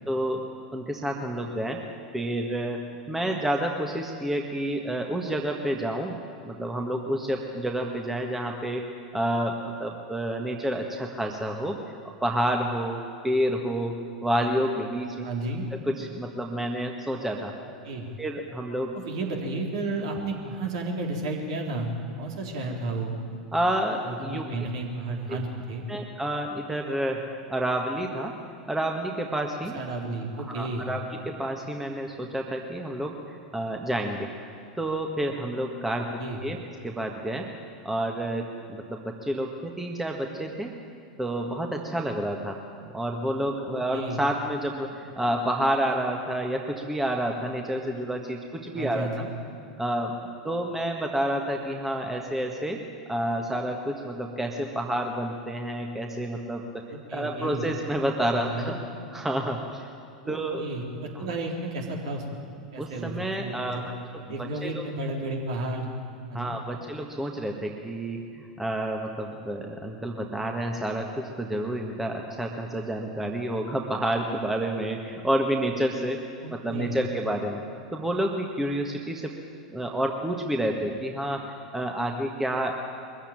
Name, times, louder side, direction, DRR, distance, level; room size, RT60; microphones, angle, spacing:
voice 1, 0.1-0.4 0.7-1.8 2.1-6.2 6.4-8.8 9.1-11.8 12.2-15.3 15.7-17.5 18.2-19.0 23.5-24.5 25.3-25.4 25.9-28.4 28.7-29.8 30.5-34.3 34.8-37.5 37.9-40.7 41.2-42.6 42.9-49.1 49.8-50.1 50.4-52.8 53.1-56.7 57.1-58.8 59.1-59.9 60.3-60.6 61.2-61.3 62.8-63.8 64.1-64.8 66.3-76.2 76.5-77.6 77.9-79.3 79.7-82.8, right 1 dB, 5° right, 2 dB, 1.7 m, -29 dB
voice 2, 15.2-15.7 17.8-18.1 18.9-21.9 22.2-23.1 24.0-25.8 29.7-30.9 36.2-36.4 43.7-44.2 48.7-49.3 56.9-57.7 58.3-58.8 60.2-62.2 62.7-63.9 64.3-65.8 66.3-66.5 76.4-76.9, right 2 dB, 60° right, 1 dB, 3.8 m, -32 dB
22.5 x 15.0 x 8.9 m, 2.4 s
figure-of-eight pair, 90°, 4 cm